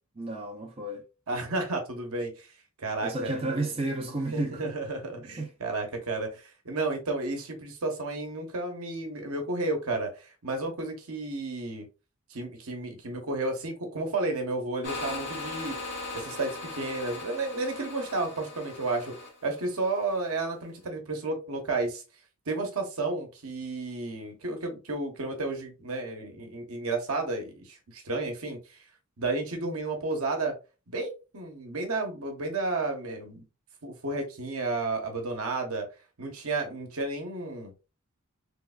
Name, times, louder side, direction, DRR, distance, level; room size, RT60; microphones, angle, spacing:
voice 1, 0.2-1.0 3.0-4.7 5.4-5.5, right 2 dB, 25° right, 0.6 m, -32 dB
voice 2, 1.3-2.5 2.8-3.7 4.0-11.8 12.3-15.8 16.1-19.1 19.4-22.0 22.5-28.8 29.2-30.5 30.9-33.4 33.8-35.9 36.2-37.7, right 3 dB, 70° right, 1.0 m, -32 dB
sound 1, 14.8-20.3, left 3 dB, 55° left, 1.0 m, -39 dB
3.4 x 3.2 x 2.3 m
head